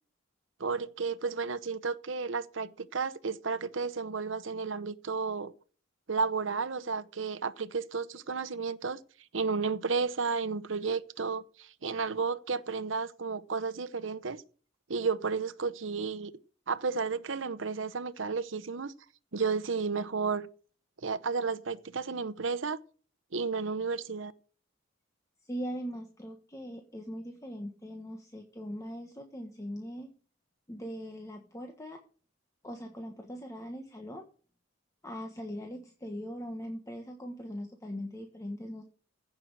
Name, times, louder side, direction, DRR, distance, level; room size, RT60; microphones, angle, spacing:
voice 1, 0.6-5.5 6.1-9.0 9.3-14.4 14.9-16.3 16.7-18.9 19.3-20.5 21.0-22.8 23.3-24.3, right 4 dB, 75° right, 0.9 m, -32 dB
voice 2, 25.5-30.1 30.7-32.0 32.6-34.3 35.0-38.8, equal, 15° left, 1.3 m, -40 dB
15.5 x 6.2 x 6.6 m
head